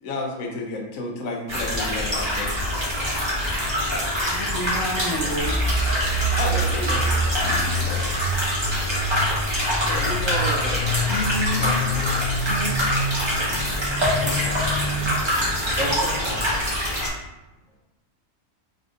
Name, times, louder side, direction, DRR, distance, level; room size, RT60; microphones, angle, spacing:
voice 1, 0.0-2.6 6.4-7.1 7.7-8.0 9.8-10.9 11.4-12.0, left 2 dB, 80° left, 1 dB, 1.2 m, -31 dB
sound 1, 1.5-17.1, equal, 20° right, 1.1 m, -25 dB
voice 2, 4.3-5.6 7.4-7.7 11.1-11.7 12.5-12.8, left 2 dB, 60° left, -2 dB, 0.8 m, -30 dB
sound 2, 5.4-15.1, right 1 dB, 50° right, 0.9 m, -27 dB
voice 3, 14.0-14.5 14.8-15.0 15.2-15.5 15.8-16.4, right 1 dB, 70° right, -7 dB, 1.8 m, -32 dB
4.3 x 3.6 x 2.5 m, 0.99 s
omnidirectional pair, 1.4 m